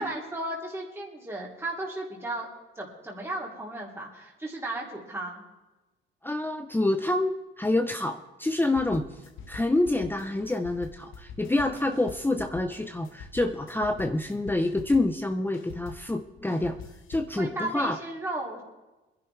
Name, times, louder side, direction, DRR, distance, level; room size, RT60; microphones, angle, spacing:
voice 1, 0.0-2.5 2.7-5.4 17.4-18.6, right 1 dB, 10° right, -3 dB, 3.0 m, -35 dB
voice 2, 6.2-9.1 9.5-16.8 17.1-18.0, left 2 dB, 10° left, 6 dB, 0.8 m, -27 dB
sound 1, 8.6-15.2 15.5-17.4, left 6 dB, 85° left, 1.6 m, -45 dB
21.5 x 11.0 x 3.4 m, 1.1 s
cardioid pair, 90°, 20 cm